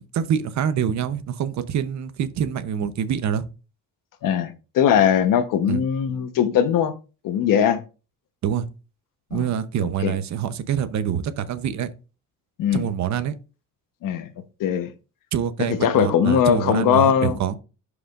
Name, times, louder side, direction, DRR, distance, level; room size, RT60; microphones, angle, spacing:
voice 1, 0.0-3.4 5.7-5.8 8.4-8.7 9.3-11.9 12.7-13.4 15.3-17.6, right 8 dB, 55° right, 0.8 m, -25 dB
voice 2, 4.2-6.9 7.2-7.8 9.3-9.5 10.0-10.1 12.6-12.9 14.0-14.3 14.6-14.9 15.7-17.4, left 8 dB, 75° left, 1.0 m, -20 dB
11.5 x 5.0 x 2.4 m
cardioid pair, 150°, 33 cm